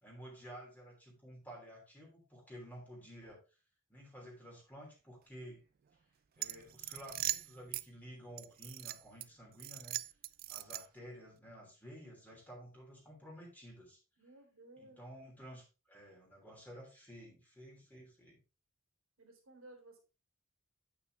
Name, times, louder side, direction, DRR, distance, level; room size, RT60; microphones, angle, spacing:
voice 1, 0.0-3.4 3.9-5.6 6.4-10.0 10.5-14.0 14.8-18.4, equal, 10° left, -2 dB, 3.1 m, -52 dB
sound 1, 6.4-7.9 8.4-9.3 9.6-11.1, right 14 dB, 45° right, 0.4 m, -40 dB
voice 2, 14.2-15.0 19.2-20.0, right 2 dB, 70° right, 1 dB, 3.2 m, -57 dB
9.0 x 6.0 x 3.3 m, 0.31 s
head